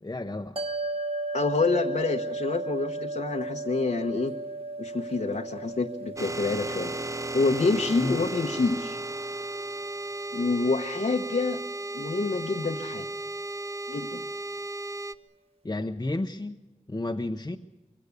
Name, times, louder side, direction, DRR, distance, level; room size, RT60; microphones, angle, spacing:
voice 1, 0.0-0.6 8.0-8.2 15.6-16.6 16.9-17.6, left 2 dB, 30° left, 3 dB, 0.8 m, -32 dB
sound 1, 0.6-13.0, right 2 dB, 45° right, 1.7 m, -37 dB
voice 2, 1.3-4.3 4.8-6.9 7.3-9.0 10.3-11.6 11.9-13.0 13.9-14.2, left 3 dB, 70° left, 1 dB, 1.1 m, -27 dB
sound 2, 6.2-15.1, right 2 dB, 25° right, 0.7 m, -35 dB
23.5 x 17.0 x 8.2 m, 1.1 s
wide cardioid pair, 55°, 14 cm